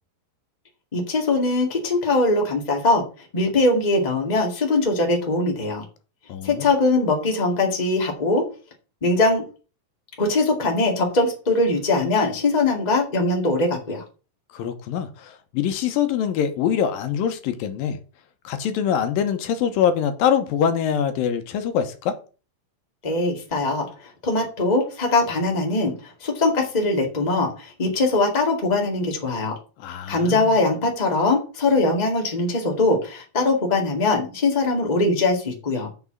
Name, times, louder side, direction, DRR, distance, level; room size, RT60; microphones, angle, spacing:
voice 1, 0.9-3.0 3.3-5.8 6.4-8.5 9.0-9.4 10.2-14.0 23.0-29.6 30.1-35.9, left 2 dB, 20° left, 1.3 m, -21 dB
voice 2, 6.3-6.7 14.5-18.0 18.4-22.2 29.8-30.5, left 8 dB, 80° left, 2.7 m, -24 dB
6.2 x 6.1 x 7.2 m
omnidirectional pair, 4.1 m